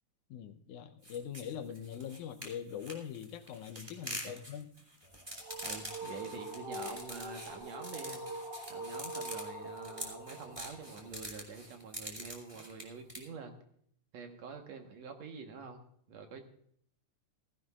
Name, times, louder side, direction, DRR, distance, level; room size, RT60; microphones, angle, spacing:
voice 1, 0.3-4.7, left 9 dB, 75° left, 9 dB, 2.1 m, -42 dB
sound 1, 1.0-13.2, equal, 10° right, 2.1 m, -45 dB
voice 2, 4.0-4.4 5.6-8.2 8.7-13.5 14.1-15.8 16.1-16.4, right 5 dB, 65° right, 4 dB, 2.4 m, -47 dB
sound 2, 5.0-11.2, right 1 dB, 35° right, 0.8 m, -44 dB
16.5 x 15.5 x 2.4 m, 0.65 s
omnidirectional pair, 3.6 m